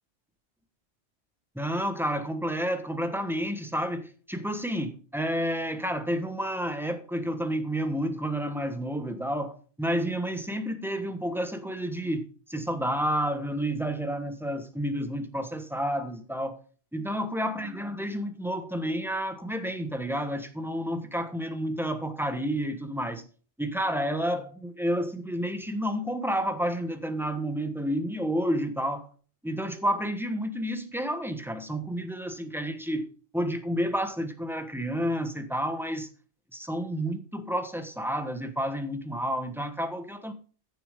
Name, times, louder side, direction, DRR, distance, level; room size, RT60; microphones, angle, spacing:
voice 1, 1.5-12.2 12.5-16.6 16.9-23.2 23.6-29.1 29.4-33.0 33.3-36.1 36.5-40.3, equal, ahead, 1.3 m, -30 dB
15.0 x 7.0 x 3.7 m
omnidirectional pair, 1.2 m